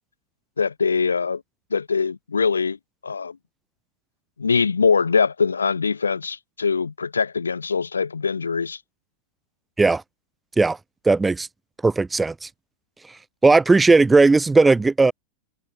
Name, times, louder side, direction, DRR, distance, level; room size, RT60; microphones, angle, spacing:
voice 1, 0.6-1.4 1.7-2.8 3.0-3.4 4.4-8.8, left 5 dB, 75° left, 7.5 m, -22 dB
voice 2, 11.0-11.5 11.8-12.5 13.4-15.1, right 3 dB, 10° right, 2.4 m, -16 dB
figure-of-eight pair, 90°, 0 cm